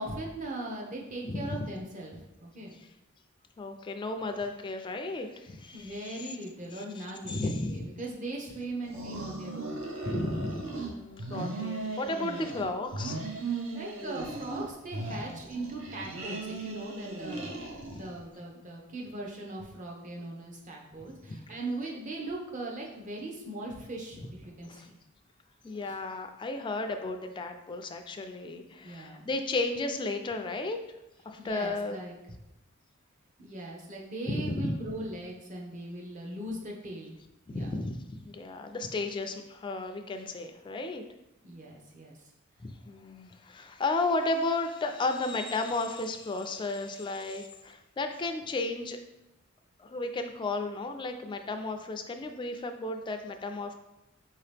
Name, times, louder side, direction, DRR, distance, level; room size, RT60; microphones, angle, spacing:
voice 1, 0.0-2.7 5.7-9.8 12.2-12.4 13.4-17.5 17.9-25.0 25.7-25.9 28.8-29.3 31.4-32.2 33.4-37.1 37.5-37.7 41.4-42.2, right 1 dB, 40° right, -2 dB, 0.8 m, -39 dB
voice 2, 1.2-1.7 2.7-2.9 3.6-6.4 6.7-7.9 10.0-13.2 15.1-15.2 17.9-18.1 21.3-21.4 24.2-24.3 24.6-24.9 25.6-30.8 31.3-32.0 34.3-34.8 37.5-41.0 42.6-49.0 49.8-53.7, left 2 dB, 25° left, 6 dB, 0.3 m, -34 dB
sound 1, 8.8-10.9 11.2-12.7 12.9-14.7 14.9-18.1, right 3 dB, 70° right, 0.7 m, -37 dB
4.7 x 2.8 x 3.3 m, 0.90 s
head